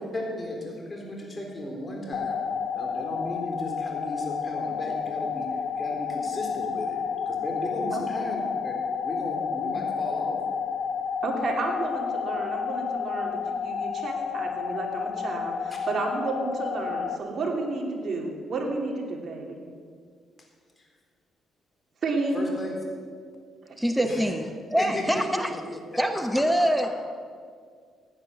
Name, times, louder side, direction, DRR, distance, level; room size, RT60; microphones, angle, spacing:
voice 1, 0.1-2.4 2.8-7.0 7.3-8.7 9.0-10.4 20.8-20.9 22.3-22.8 24.0-24.3 24.8-26.0, left 1 dB, 25° left, 0 dB, 3.8 m, -35 dB
sound 1, 2.1-17.2, left 6 dB, 60° left, 0.9 m, -30 dB
voice 2, 11.2-19.5 22.0-22.4 24.0-24.1, right 3 dB, 50° right, 0 dB, 3.0 m, -31 dB
voice 3, 23.8-24.4 24.7-25.5 26.0-26.9, equal, ahead, 6 dB, 0.9 m, -24 dB
15.5 x 9.5 x 6.7 m, 2.1 s
cardioid pair, 90°, 0 cm